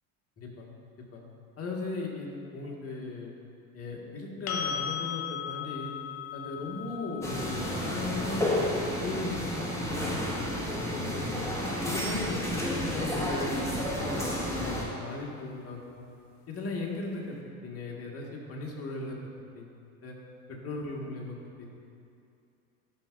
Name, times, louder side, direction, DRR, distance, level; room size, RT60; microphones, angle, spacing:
voice 1, 1.6-3.3 3.7-5.9 6.3-8.6 9.0-11.5 11.8-16.1 16.5-17.4 17.6-19.2 19.5-19.7 20.0-20.1 20.5-21.7, left 3 dB, 35° left, -2 dB, 1.7 m, -37 dB
sound 1, 4.5-12.3 15.1-15.2, left 8 dB, 80° left, 1.0 m, -39 dB
sound 2, 7.2-14.8, left 1 dB, 5° left, 1.5 m, -31 dB
12.5 x 5.6 x 2.5 m, 2.5 s
hypercardioid pair, 80°, 43 cm